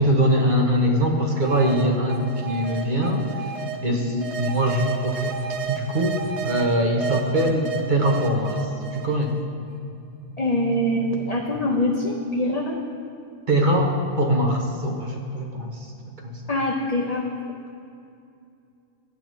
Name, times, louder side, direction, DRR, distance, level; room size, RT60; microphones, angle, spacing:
voice 1, 0.0-3.5 3.8-4.1 4.4-5.3 5.7-6.2 6.4-9.3 13.5-15.9 16.2-16.4, equal, 40° right, 1 dB, 0.9 m, -22 dB
sound 1, 1.4-3.8 4.2-6.6 7.0-9.4, right 6 dB, 60° right, 1.1 m, -31 dB
voice 2, 3.9-4.3 10.4-12.8 16.5-17.2, left 1 dB, 50° left, 0 dB, 0.5 m, -24 dB
sound 2, 9.9-11.9 13.6-15.6, right 2 dB, 10° right, 0.5 m, -41 dB
12.5 x 8.0 x 3.1 m, 2.5 s
omnidirectional pair, 1.4 m